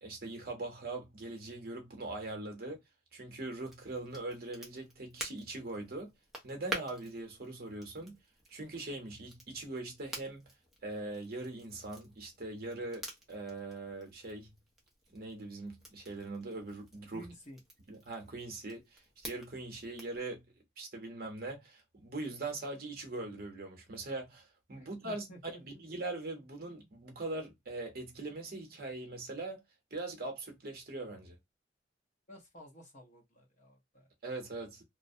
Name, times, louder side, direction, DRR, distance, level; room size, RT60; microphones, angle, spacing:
voice 1, 0.0-2.8 3.1-6.1 6.4-8.1 8.5-10.4 10.8-14.5 15.1-17.3 17.9-20.4 20.8-29.6 29.9-31.4 34.2-34.8, right 2 dB, 50° right, 0.7 m, -41 dB
Crackle, 3.6-20.2, right 1 dB, ahead, 0.5 m, -49 dB
voice 2, 17.1-17.6 24.8-25.8 32.3-34.1, equal, 40° left, 0.8 m, -53 dB
2.4 x 2.0 x 2.6 m
head